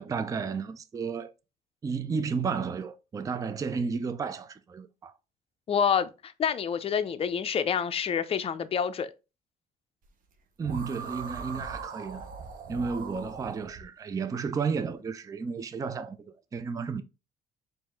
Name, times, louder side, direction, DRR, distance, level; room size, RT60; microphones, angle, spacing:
voice 1, 0.0-1.3 1.8-5.1 10.6-12.2 12.7-17.0, right 5 dB, 20° right, 0.4 m, -32 dB
voice 2, 5.7-9.1, left 7 dB, 35° left, 0.5 m, -27 dB
sound 1, 10.6-13.8, right 5 dB, 55° right, 0.7 m, -40 dB
4.5 x 2.5 x 3.5 m
cardioid pair, 110°, 17 cm